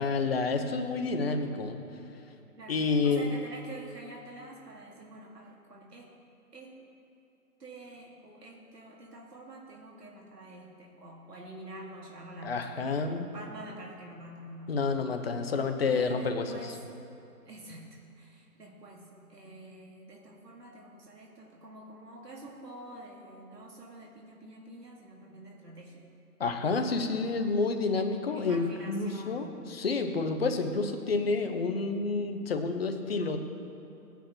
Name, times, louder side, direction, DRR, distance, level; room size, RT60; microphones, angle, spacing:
voice 1, 0.0-1.8 2.7-3.3 12.4-13.3 14.7-16.7 26.4-33.4, left 4 dB, 40° left, 6 dB, 0.8 m, -29 dB
voice 2, 2.6-6.1 6.5-6.8 7.6-14.8 15.9-16.8 17.5-26.0 28.3-29.5 29.8-30.1, right 1 dB, 80° right, -1 dB, 1.9 m, -47 dB
16.5 x 9.2 x 2.9 m, 2.9 s
figure-of-eight pair, 145°, 47 cm